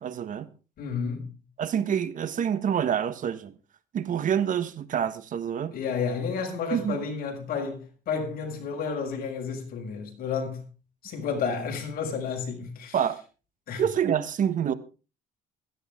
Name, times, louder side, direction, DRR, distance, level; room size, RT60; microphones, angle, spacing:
voice 1, 0.0-0.5 1.6-3.5 3.9-5.7 6.7-7.0 12.9-13.2 13.8-14.7, right 8 dB, 50° right, 1.5 m, -27 dB
voice 2, 0.8-1.3 5.7-10.6 11.0-13.0 13.7-13.9, left 5 dB, 60° left, 7.2 m, -31 dB
16.5 x 15.5 x 3.8 m
cardioid pair, 110°, 17 cm